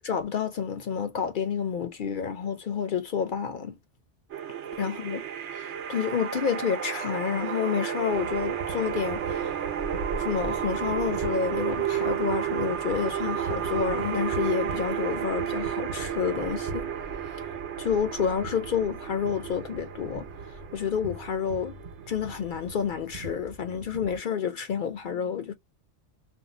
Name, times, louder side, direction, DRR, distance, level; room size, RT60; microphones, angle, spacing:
voice 1, 0.0-3.8 4.8-5.3 5.5-9.6 10.2-16.9 17.3-17.4 17.8-21.8 22.1-25.5, left 7 dB, 60° left, 0.6 m, -29 dB
sound 1, 4.3-23.3, right 9 dB, 85° right, 0.9 m, -32 dB
sound 2, 8.1-24.2, right 2 dB, 50° right, 0.9 m, -42 dB
2.6 x 2.1 x 3.9 m
omnidirectional pair, 1.2 m